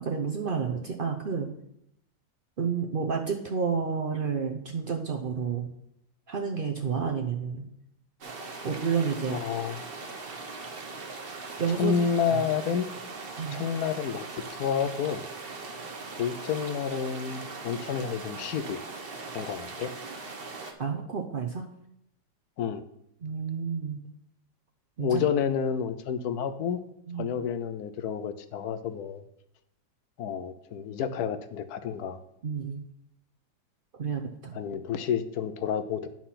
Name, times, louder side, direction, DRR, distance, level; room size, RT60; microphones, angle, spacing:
voice 1, 0.0-1.5 2.6-5.7 6.3-7.6 8.6-9.4 11.6-12.1 12.3-12.4 13.4-13.6 20.8-21.7 23.2-24.0 25.0-25.2 27.1-27.3 32.4-32.8 34.0-34.6, right 6 dB, 75° right, 1 dB, 0.4 m, -30 dB
sound 1, 8.2-20.7, right 3 dB, 40° right, 1.0 m, -40 dB
voice 2, 9.3-9.9 11.8-12.9 13.5-15.2 16.2-18.8 19.3-19.9 22.6-22.8 25.0-26.8 27.2-29.2 30.2-32.2 34.5-36.1, left 7 dB, 70° left, 11 dB, 1.0 m, -30 dB
9.9 x 4.5 x 5.7 m, 0.77 s
omnidirectional pair, 2.0 m